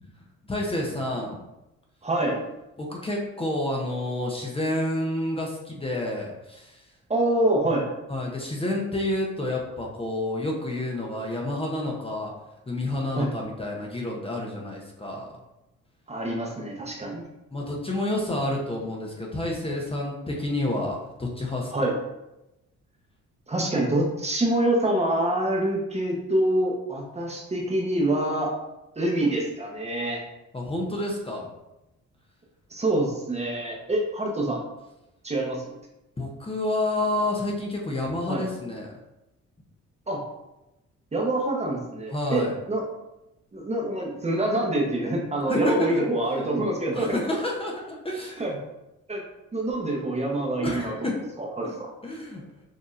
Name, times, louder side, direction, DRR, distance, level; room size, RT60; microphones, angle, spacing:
voice 1, 0.4-1.4 2.8-6.9 8.1-12.3 12.7-15.3 17.5-21.9 30.5-31.5 36.2-39.0 42.1-42.6 45.5-46.0 46.9-48.5 50.6-51.2 51.6-51.7 52.0-52.4, left 1 dB, 20° left, -1 dB, 0.8 m, -29 dB
voice 2, 2.0-2.4 7.1-7.9 13.1-13.3 16.1-17.3 21.7-21.9 23.5-28.5 29.0-30.2 32.7-34.6 35.2-35.8 38.3-38.4 40.1-40.2 41.1-42.8 43.5-47.2 48.4-48.5 49.1-49.2 49.5-50.9 51.4-51.7, right 1 dB, 20° right, -1 dB, 0.9 m, -26 dB
6.4 x 2.7 x 2.5 m, 0.95 s
cardioid pair, 90°, 30 cm